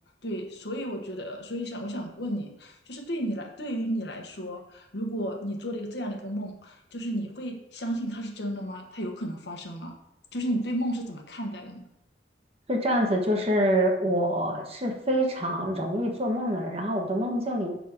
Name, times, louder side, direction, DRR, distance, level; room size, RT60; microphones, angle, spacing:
voice 1, 0.2-10.0 10.3-11.8, equal, 65° left, 3 dB, 1.1 m, -33 dB
voice 2, 12.7-17.7, equal, 35° right, 2 dB, 1.1 m, -26 dB
6.4 x 4.0 x 5.9 m, 0.86 s
head